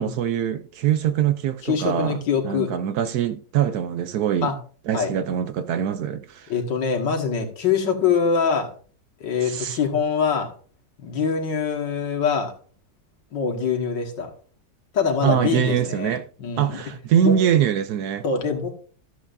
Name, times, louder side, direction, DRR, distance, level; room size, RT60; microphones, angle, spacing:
voice 1, 0.0-2.2 2.4-4.5 4.9-6.5 9.4-9.8 15.2-16.3 16.6-18.2, right 9 dB, 70° right, 1.0 m, -23 dB
voice 2, 1.6-2.7 4.4-4.6 4.9-5.1 6.5-8.7 9.2-10.5 11.0-12.5 13.3-14.3 14.9-16.1 16.4-16.8 17.2-17.4 18.2-18.7, left 6 dB, 80° left, 2.2 m, -24 dB
13.5 x 7.8 x 2.6 m
omnidirectional pair, 1.9 m